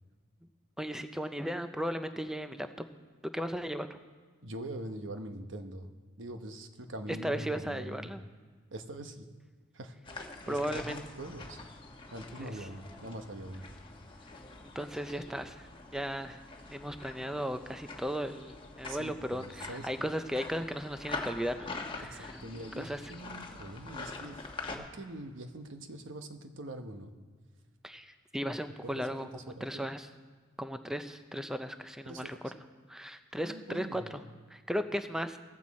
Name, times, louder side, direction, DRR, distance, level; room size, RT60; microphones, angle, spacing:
voice 1, 0.8-2.7 3.3-4.0 7.2-8.2 10.5-11.0 12.4-12.5 14.8-16.4 16.7-21.7 22.0-22.4 22.8-23.0 27.8-29.3 29.6-30.1 30.6-32.4 32.9-34.0 34.5-35.4, equal, 5° right, 9 dB, 0.5 m, -36 dB
voice 2, 4.4-5.9 6.2-8.1 8.7-9.3 9.7-11.6 12.1-13.7 18.9-20.1 22.1-24.5 24.7-27.1 28.8-29.9 32.0-32.4 33.4-34.2, right 1 dB, 70° right, 7 dB, 1.0 m, -43 dB
sound 1, 10.0-24.8, left 3 dB, 25° left, 1.3 m, -45 dB
15.0 x 14.5 x 4.2 m, 1.5 s
head